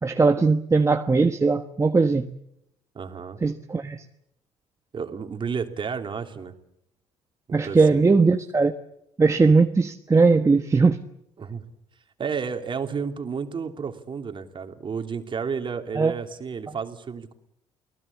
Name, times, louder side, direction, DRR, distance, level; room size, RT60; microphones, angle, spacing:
voice 1, 0.0-2.3 3.4-4.0 7.5-8.7 9.2-11.0 16.0-16.1, right 4 dB, 25° right, 6 dB, 1.3 m, -19 dB
voice 2, 2.9-3.4 4.9-6.5 7.5-8.0 11.4-11.6 12.2-17.3, right 6 dB, 40° right, 6 dB, 3.0 m, -31 dB
30.0 x 19.0 x 8.5 m, 0.80 s
supercardioid pair, 70°, 13 cm